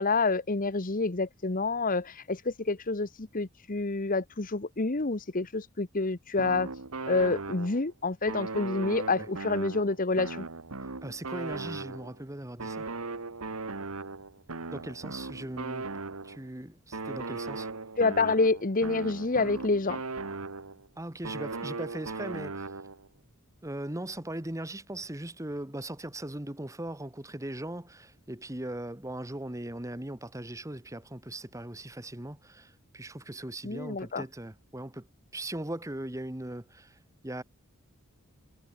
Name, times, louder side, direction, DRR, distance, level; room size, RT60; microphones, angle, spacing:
voice 1, 0.0-6.7 7.1-10.5 18.0-20.0 33.6-34.2, left 3 dB, 40° left, 1.0 m, -28 dB
sound 1, 6.4-7.9 8.3-12.2 12.6-16.5 16.9-20.9 21.2-23.1, right 3 dB, 80° right, 1.6 m, -38 dB
voice 2, 10.8-12.9 14.7-15.9 16.2-17.7 21.0-22.7 23.6-35.1 35.3-37.0 37.2-37.4, right 1 dB, 15° right, 1.4 m, -39 dB
head